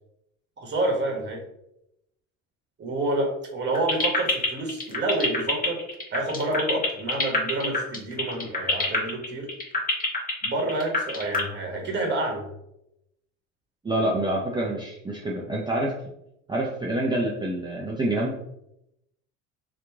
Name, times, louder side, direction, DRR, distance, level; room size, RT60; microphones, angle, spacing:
voice 1, 0.6-1.4 2.8-5.8 6.1-9.5 10.4-12.5, right 2 dB, 30° right, 0 dB, 1.1 m, -28 dB
sound 1, 3.7-11.4, left 4 dB, 25° left, 1.0 m, -25 dB
voice 2, 13.8-15.9 16.5-18.3, right 1 dB, 10° right, -3 dB, 0.5 m, -27 dB
2.9 x 2.5 x 3.5 m, 0.82 s
hypercardioid pair, 80°, 37 cm